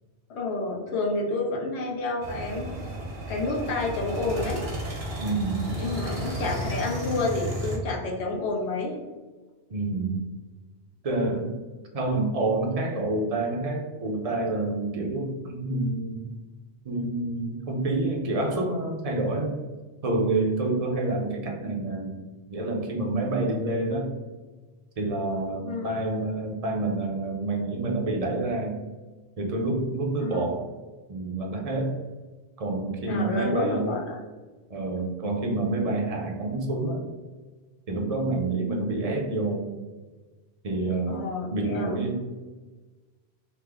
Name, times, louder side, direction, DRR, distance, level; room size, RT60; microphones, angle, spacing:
voice 1, 0.3-2.7 3.3-4.6 5.7-9.0 25.7-25.9 30.2-30.5 33.1-34.2 41.1-41.9, left 3 dB, 85° left, 0 dB, 1.0 m, -29 dB
sound 1, 2.2-7.8, right 1 dB, 70° right, 1.2 m, -33 dB
voice 2, 5.2-5.7 9.7-10.3 11.0-11.5 11.9-16.3 16.8-19.6 20.0-22.2 22.5-24.1 25.0-28.8 29.4-30.7 31.1-32.0 32.6-33.9 34.7-37.1 37.9-39.7 40.6-41.2 41.5-42.2, right 2 dB, 45° right, 0 dB, 0.6 m, -28 dB
3.3 x 2.1 x 3.5 m, 1.3 s
omnidirectional pair, 1.1 m